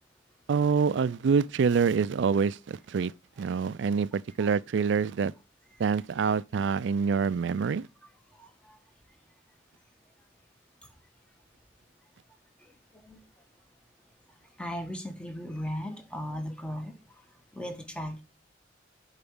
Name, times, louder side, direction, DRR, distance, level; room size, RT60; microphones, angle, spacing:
voice 1, 0.5-3.1 3.4-5.3 5.8-7.9, right 5 dB, 65° right, 0.4 m, -26 dB
voice 2, 8.3-8.8 12.6-12.7 13.0-13.2 14.6-17.2 17.5-18.2, equal, 5° left, 1.1 m, -37 dB
7.0 x 4.8 x 7.1 m
head